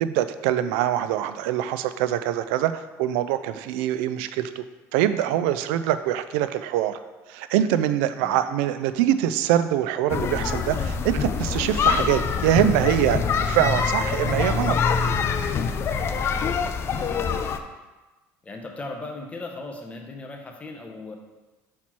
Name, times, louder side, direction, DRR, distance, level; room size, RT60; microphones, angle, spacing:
voice 1, 0.0-4.6 4.9-7.0 7.3-14.8, right 11 dB, 90° right, 12 dB, 0.4 m, -24 dB
sound 1, 10.1-17.6, left 6 dB, 40° left, 0.5 m, -25 dB
voice 2, 18.4-21.1, left 2 dB, 20° left, 2 dB, 0.9 m, -37 dB
5.7 x 4.3 x 4.5 m, 1.2 s
cardioid pair, 110°, 6 cm